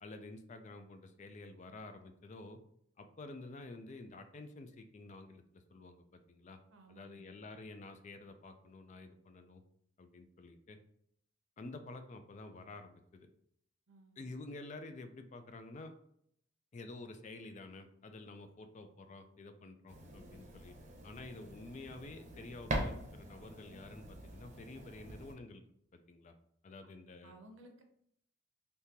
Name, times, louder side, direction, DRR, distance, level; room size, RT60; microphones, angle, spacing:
voice 1, 0.0-2.6 3.0-6.6 6.9-9.6 10.0-10.8 11.6-13.3 14.2-16.0 16.7-20.8 21.0-25.6 25.9-26.3 26.6-27.3, left 2 dB, 35° left, 8 dB, 0.3 m, -50 dB
voice 2, 6.7-7.3 13.9-14.2 27.2-27.8, right 1 dB, 75° right, 4 dB, 0.7 m, -58 dB
sound 1, 19.9-25.3, right 1 dB, 35° right, 0.7 m, -43 dB
3.6 x 2.7 x 2.9 m, 0.69 s
head